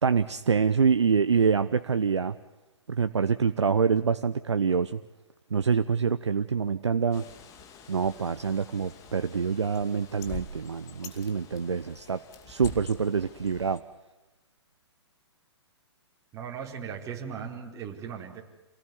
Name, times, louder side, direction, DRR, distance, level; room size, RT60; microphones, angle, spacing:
voice 1, 0.0-2.4 2.9-5.0 5.5-7.2 7.9-13.8, right 6 dB, 70° right, 11 dB, 0.9 m, -26 dB
Bird, 7.1-13.8, left 5 dB, 20° left, 2.4 m, -46 dB
voice 2, 16.3-18.4, right 7 dB, 20° right, 0 dB, 4.4 m, -38 dB
28.0 x 18.5 x 9.8 m, 1.0 s
figure-of-eight pair, 120°, 15 cm